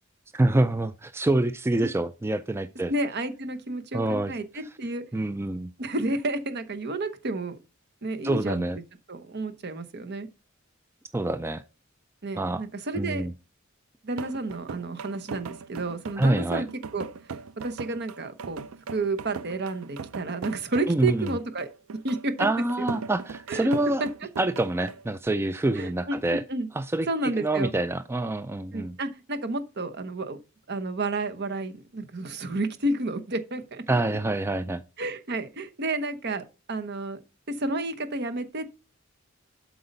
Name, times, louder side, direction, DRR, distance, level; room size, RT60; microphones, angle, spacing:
voice 1, 0.3-2.9 3.9-4.3 5.1-5.7 8.2-8.8 11.1-11.6 12.3-12.6 13.0-13.3 16.2-16.6 20.9-21.3 22.4-24.0 24.4-26.4 26.7-29.0 33.9-34.8, right 2 dB, 10° right, 0.3 m, -26 dB
voice 2, 2.9-5.0 5.8-7.6 8.0-8.6 9.1-10.3 12.2-13.3 14.0-16.7 16.9-17.1 17.6-18.6 18.9-21.7 22.0-22.3 23.5-23.7 24.0-24.1 25.7-26.7 27.1-27.7 28.7-30.4 30.7-33.8 35.0-37.2 37.5-38.8, right 2 dB, 55° right, 1.0 m, -31 dB
sound 1, 14.1-25.1, right 5 dB, 80° right, 0.5 m, -39 dB
8.0 x 4.8 x 5.3 m
head